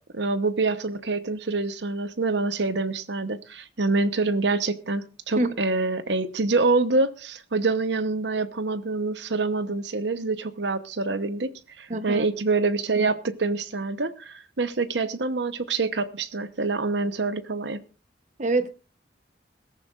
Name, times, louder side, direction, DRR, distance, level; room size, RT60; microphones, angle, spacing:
voice 1, 0.1-17.8, right 3 dB, 75° right, 1.0 m, -26 dB
voice 2, 11.9-12.3 18.4-18.7, right 2 dB, 40° right, 0.9 m, -25 dB
21.0 x 14.0 x 2.5 m
head